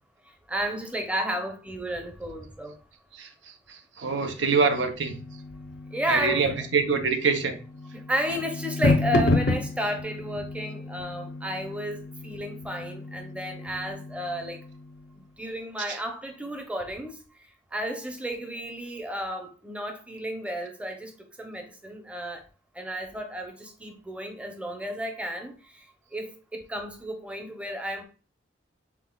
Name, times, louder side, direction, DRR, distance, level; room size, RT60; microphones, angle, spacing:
voice 1, 0.5-2.7 5.9-6.6 7.9-14.6 15.4-17.1 17.7-21.1 21.4-22.4 22.8-25.5 26.1-28.0, equal, 5° right, 0.7 m, -32 dB
voice 2, 3.1-5.2 6.1-7.6 15.9-16.0, right 4 dB, 80° right, 0.7 m, -25 dB
sound 1, 4.3-15.1, left 2 dB, 80° left, 0.7 m, -31 dB
5.9 x 3.9 x 2.3 m
head